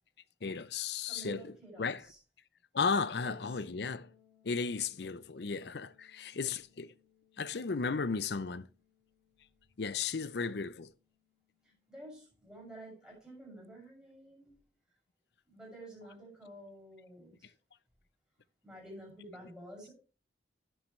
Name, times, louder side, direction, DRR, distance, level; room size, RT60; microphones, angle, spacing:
voice 1, 0.4-2.0 2.7-4.1 4.4-6.9 7.4-8.7 9.8-10.9, left 5 dB, 65° left, 0.6 m, -35 dB
voice 2, 1.1-2.2 3.2-3.4 11.6-14.6 15.5-17.5 18.6-19.9, right 1 dB, 5° right, 6.7 m, -50 dB
sound 1, 3.2-12.9, left 7 dB, 85° left, 2.5 m, -66 dB
11.0 x 10.5 x 3.2 m
head